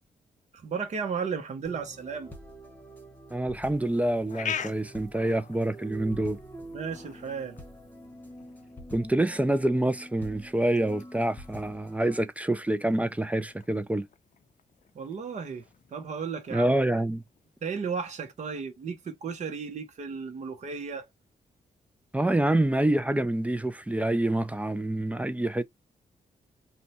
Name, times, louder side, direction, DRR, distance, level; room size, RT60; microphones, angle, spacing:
voice 1, 0.5-2.3 6.7-7.6 14.9-15.6 15.9-16.8 17.6-21.1, right 6 dB, 50° right, 0.8 m, -34 dB
sound 1, 1.6-12.2, right 1 dB, 15° left, 1.0 m, -46 dB
voice 2, 3.3-6.4 8.9-14.1 16.5-17.2 22.1-25.6, right 1 dB, 10° right, 0.3 m, -26 dB
sound 2, 3.6-17.7, left 8 dB, 55° left, 0.5 m, -45 dB
2.7 x 2.2 x 4.1 m
cardioid pair, 95°, 15 cm